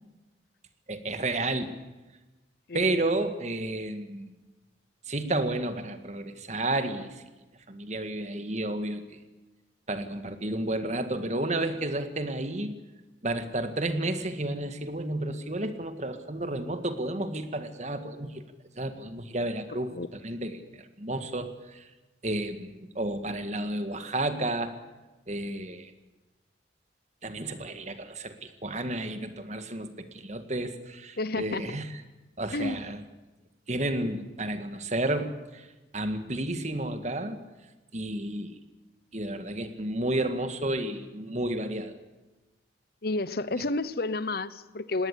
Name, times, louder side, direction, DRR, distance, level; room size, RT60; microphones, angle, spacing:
voice 1, 0.9-1.7 2.7-4.3 5.1-7.2 7.7-9.2 9.9-12.7 13.2-18.4 18.8-21.9 22.2-24.7 25.3-25.9 27.2-31.9 32.4-33.0 33.7-35.7 35.9-37.4 37.9-38.6 39.1-42.0 43.6-43.7, right 1 dB, 40° right, 9 dB, 1.9 m, -31 dB
voice 2, 19.7-20.1 31.2-31.8 32.5-32.8 43.0-45.1, left 2 dB, 55° left, 16 dB, 0.8 m, -31 dB
20.0 x 18.5 x 8.3 m, 1.1 s
head